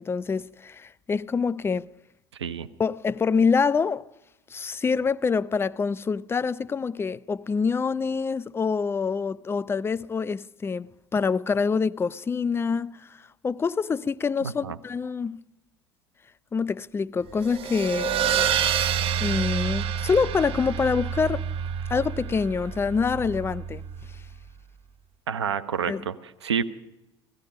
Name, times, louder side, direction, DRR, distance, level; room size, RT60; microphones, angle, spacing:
voice 1, 0.0-1.9 2.8-4.1 4.5-13.1 13.4-15.4 16.5-18.1 19.2-21.5 21.9-23.8 25.9-26.0, left 5 dB, 15° left, 0.5 m, -26 dB
voice 2, 14.4-14.8 25.3-26.2 26.4-26.6, right 7 dB, 80° right, 0.8 m, -28 dB
sound 1, 17.4-24.4, right 8 dB, 40° right, 1.0 m, -28 dB
17.5 x 15.0 x 5.0 m
figure-of-eight pair, 70°, 14 cm